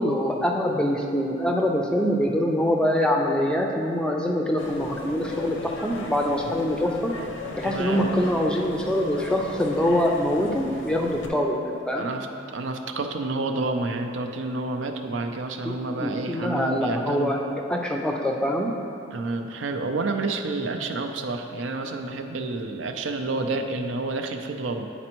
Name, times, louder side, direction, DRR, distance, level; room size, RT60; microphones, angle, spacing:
voice 1, 0.0-5.6 5.8-7.1 7.6-12.1 15.6-15.7 16.0-18.7, equal, 5° left, 1 dB, 0.4 m, -24 dB
sound 1, 4.6-11.3, left 1 dB, 90° left, 0.7 m, -36 dB
voice 2, 7.6-8.1 12.0-12.3 12.5-17.4 19.1-24.9, right 3 dB, 85° right, 4 dB, 0.5 m, -29 dB
9.8 x 4.2 x 3.0 m, 2.8 s
head